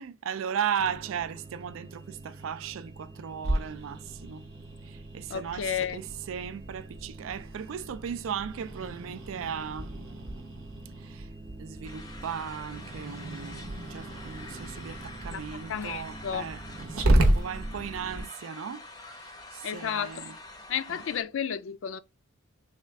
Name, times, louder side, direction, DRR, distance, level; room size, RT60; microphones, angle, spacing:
voice 1, 0.0-4.4 4.8-10.1 11.0-11.3 11.6-18.9 19.2-20.4 20.9-21.0, right 8 dB, 70° right, 0.3 m, -36 dB
sound 1, 0.8-18.2, right 2 dB, 25° right, 0.6 m, -46 dB
Growling, 3.4-18.2, right 1 dB, 85° right, 0.9 m, -32 dB
voice 2, 5.3-6.0 15.3-15.4 15.7-16.4 19.6-20.1 20.7-22.0, left 8 dB, 65° left, 0.4 m, -32 dB
sound 2, 11.8-21.2, left 2 dB, 20° left, 0.6 m, -47 dB
3.6 x 2.3 x 3.2 m
head